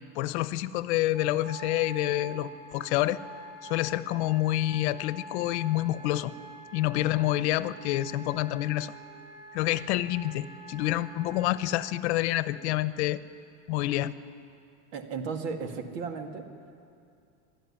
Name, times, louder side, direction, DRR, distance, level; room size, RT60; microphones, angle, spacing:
voice 1, 0.1-3.2 3.6-6.3 6.7-8.9 9.5-13.2 13.7-14.1, left 15 dB, 65° left, 15 dB, 0.8 m, -28 dB
Wind instrument woodwind instrument, 1.1-12.0, right 2 dB, 30° right, 3.5 m, -46 dB
voice 2, 14.9-16.5, right 5 dB, 80° right, 5 dB, 2.3 m, -35 dB
25.5 x 12.0 x 10.0 m, 2.5 s
supercardioid pair, 175°, 36 cm